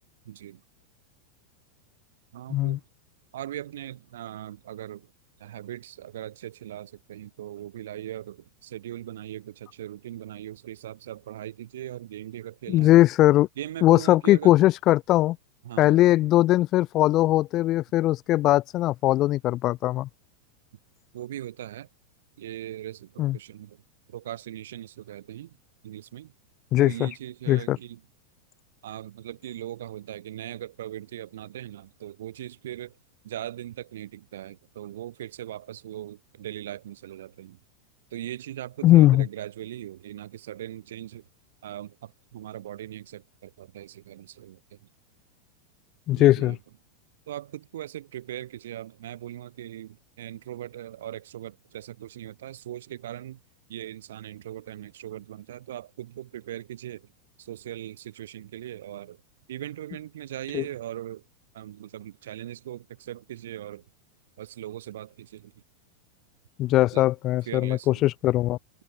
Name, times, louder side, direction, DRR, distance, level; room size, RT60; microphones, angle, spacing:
voice 1, 0.2-0.6 2.3-2.8 3.3-5.1 5.4-13.1 13.6-14.6 15.6-16.0 21.1-21.9 22.4-23.8 24.1-25.6 25.8-26.3 26.8-28.0 28.8-33.0 33.2-37.6 38.1-41.3 41.6-44.8 46.2-46.6 47.3-53.4 53.7-57.1 57.4-59.2 59.5-61.2 61.5-63.8 64.4-65.5 66.9-67.1 67.5-68.0, right 12 dB, 60° right, 2.3 m, -39 dB
voice 2, 12.7-13.5 13.8-15.4 15.8-20.1 23.2-23.4 26.7-27.1 27.5-27.8 38.8-39.3 46.1-46.6 60.5-60.6 66.6-68.6, left 15 dB, 35° left, 0.5 m, -20 dB
figure-of-eight pair, 90°, 0 cm